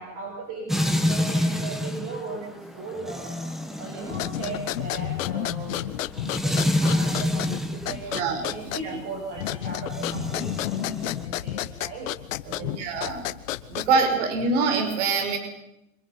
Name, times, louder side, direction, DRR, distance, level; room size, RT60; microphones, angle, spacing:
voice 1, 0.0-12.8 13.7-13.8, right 3 dB, 30° right, 0 dB, 7.5 m, -38 dB
sound 1, 0.7-7.9 9.8-11.2, left 1 dB, ahead, 1.5 m, -27 dB
sound 2, 4.1-14.1, left 13 dB, 70° left, 1.5 m, -32 dB
voice 2, 7.9-8.4 8.8-9.0 12.6-13.2 13.7-15.4, right 4 dB, 60° right, 6 dB, 5.4 m, -25 dB
29.5 x 26.5 x 5.8 m, 0.86 s
supercardioid pair, 160°, 40 cm